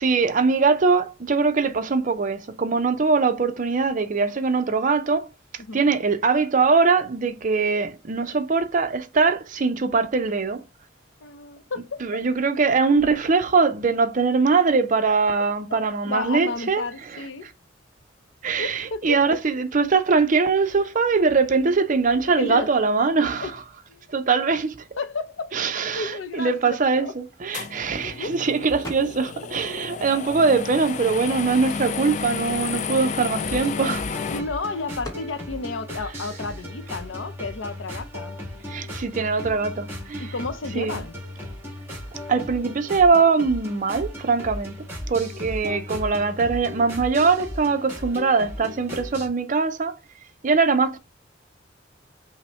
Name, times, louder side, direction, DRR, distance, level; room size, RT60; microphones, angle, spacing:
voice 1, 0.0-5.3 5.7-10.6 12.0-16.8 17.1-17.5 18.4-23.5 24.1-24.8 25.5-34.2 38.7-40.3 40.7-41.0 42.3-44.8 45.1-50.0 50.4-51.0, right 4 dB, 45° right, 0.5 m, -22 dB
voice 2, 11.2-12.2 15.7-17.5 18.6-19.4 22.2-22.8 23.4-23.5 23.9-24.0 25.0-27.1 28.0-28.4 30.5-30.6 34.3-38.4 40.2-41.2, left 3 dB, 90° left, 0.6 m, -32 dB
sound 1, 27.5-34.4, left 6 dB, 40° left, 0.3 m, -31 dB
sound 2, 28.8-29.4 29.8-31.0 31.6-31.7 31.9-34.2 35.0-35.3, left 1 dB, 20° left, 1.0 m, -42 dB
sound 3, 33.3-49.3, left 1 dB, 15° right, 1.7 m, -36 dB
5.7 x 2.1 x 4.2 m
head